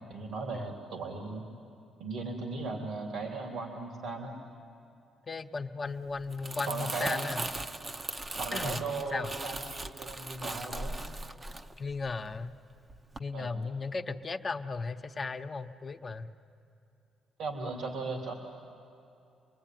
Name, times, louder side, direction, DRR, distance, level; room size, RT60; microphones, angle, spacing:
voice 1, 0.1-1.4 2.0-4.4 6.7-7.2 8.4-11.0 13.3-13.6 17.4-18.3, right 3 dB, 85° right, 1 dB, 3.1 m, -37 dB
voice 2, 5.3-7.5 8.5-8.8 9.1-9.3 11.8-12.5 13.2-16.3, left 4 dB, 35° left, 7 dB, 1.0 m, -36 dB
Crumpling crinkling, 6.2-12.5 12.9-13.2, right 2 dB, 30° right, 0.8 m, -39 dB
28.5 x 22.0 x 9.3 m, 2.7 s
cardioid pair, 90°, 0 cm